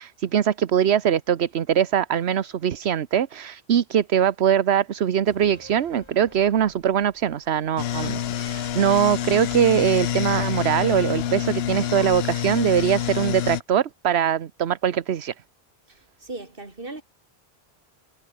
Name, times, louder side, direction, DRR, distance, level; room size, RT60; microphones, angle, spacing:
voice 1, 0.0-15.3, right 9 dB, 80° right, 1.1 m, -22 dB
sound 1, 5.3-8.8 9.2-9.3, left 1 dB, 25° left, 5.4 m, -52 dB
sound 2, 7.8-13.6, left 10 dB, 75° left, 0.9 m, -27 dB
voice 2, 15.9-17.0, right 2 dB, 55° right, 3.5 m, -38 dB
omnidirectional pair, 1.1 m